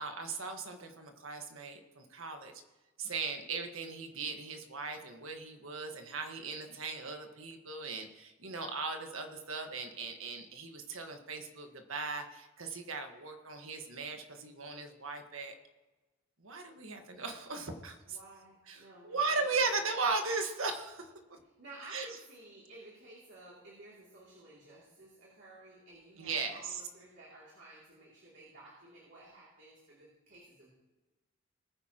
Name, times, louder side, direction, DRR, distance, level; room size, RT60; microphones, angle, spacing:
voice 1, 0.0-2.5 3.0-15.5 16.4-18.2 18.7-21.4 21.9-22.1 26.2-26.8, right 4 dB, 85° right, 5 dB, 1.5 m, -37 dB
voice 2, 18.1-19.5 21.6-30.7, right 2 dB, 60° right, -5 dB, 2.8 m, -54 dB
19.5 x 9.6 x 3.0 m, 1.1 s
head